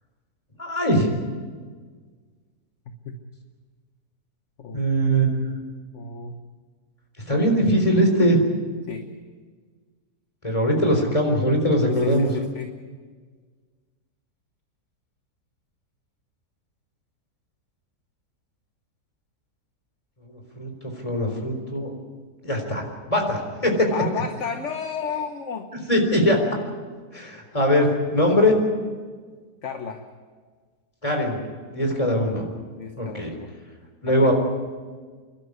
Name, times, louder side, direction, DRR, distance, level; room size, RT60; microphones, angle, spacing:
voice 1, 0.6-1.1 4.7-5.5 7.3-8.4 10.4-12.3 20.3-21.9 22.4-22.8 23.1-23.9 25.9-26.4 27.1-28.6 31.0-31.4 31.7-32.5 33.0-33.3 34.0-34.3, equal, 20° left, 3 dB, 4.0 m, -21 dB
voice 2, 5.9-6.4 8.9-9.1 11.9-12.7 23.9-25.7 29.6-30.0 32.7-33.5 34.1-34.3, left 6 dB, 50° left, 6 dB, 1.4 m, -32 dB
29.5 x 12.0 x 9.6 m, 1.5 s
omnidirectional pair, 1.8 m